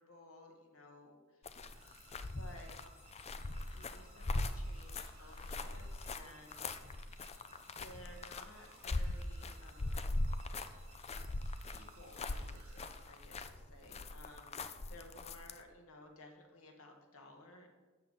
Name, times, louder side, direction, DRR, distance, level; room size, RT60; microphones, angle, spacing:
voice 1, 0.0-1.4 2.3-2.7 3.7-6.6 7.8-10.2 11.7-17.7, left 1 dB, 80° left, 2 dB, 1.8 m, -57 dB
sound 1, 1.4-15.6, left 2 dB, 30° left, 0.5 m, -41 dB
sound 2, 1.7-13.6, right 4 dB, 75° right, 2.2 m, -63 dB
12.5 x 7.2 x 4.2 m, 1.3 s
head